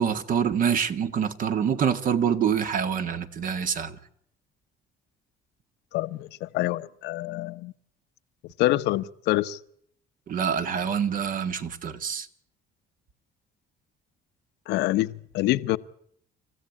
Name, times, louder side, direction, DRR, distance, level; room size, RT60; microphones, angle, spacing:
voice 1, 0.0-4.0 10.3-12.3, right 7 dB, 55° right, 1.8 m, -26 dB
voice 2, 5.9-7.7 8.6-9.6 14.7-15.8, left 17 dB, 85° left, 0.9 m, -26 dB
28.0 x 15.0 x 8.6 m
cardioid pair, 110°, 17 cm